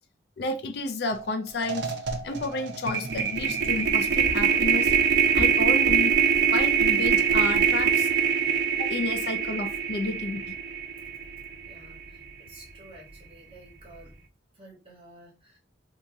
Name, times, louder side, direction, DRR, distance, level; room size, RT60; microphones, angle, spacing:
voice 1, 0.4-1.9 2.2-4.9 5.3-6.1 6.5-8.1 8.8-10.5, left 3 dB, 60° left, 0.4 m, -31 dB
sound 1, 1.1-1.3 1.6-11.9, right 7 dB, 65° right, 0.6 m, -24 dB
sound 2, 3.6-14.3, equal, ahead, 1.7 m, -45 dB
voice 2, 11.6-14.1 14.5-15.6, right 1 dB, 30° right, 1.3 m, -51 dB
2.9 x 2.7 x 3.4 m
head